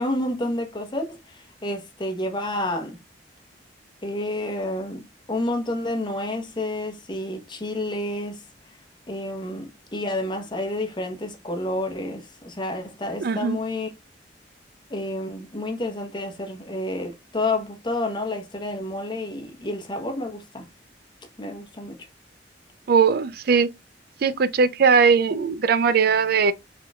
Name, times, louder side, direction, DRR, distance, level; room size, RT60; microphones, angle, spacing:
voice 1, 0.0-3.0 4.0-8.4 9.1-13.9 14.9-20.7 21.4-22.0, left 1 dB, 25° left, 1.0 m, -29 dB
voice 2, 13.2-13.6 22.9-23.7 24.2-26.5, right 5 dB, 60° right, 0.4 m, -19 dB
4.5 x 3.6 x 2.3 m
head